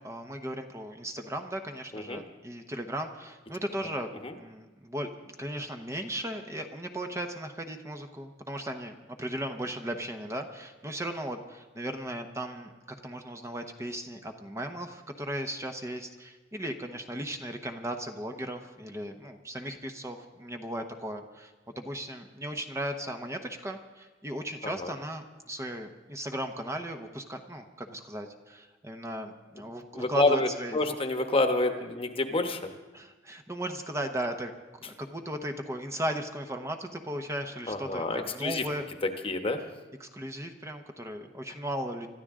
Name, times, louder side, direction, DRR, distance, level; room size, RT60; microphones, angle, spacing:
voice 1, 0.0-4.1 4.4-30.9 32.9-34.5 34.8-38.9 40.0-42.1, right 1 dB, 15° right, 5 dB, 0.9 m, -36 dB
voice 2, 29.9-32.6 37.7-38.6 39.2-39.6, left 2 dB, 30° left, 6 dB, 1.2 m, -28 dB
25.5 x 13.0 x 3.7 m, 1.2 s
head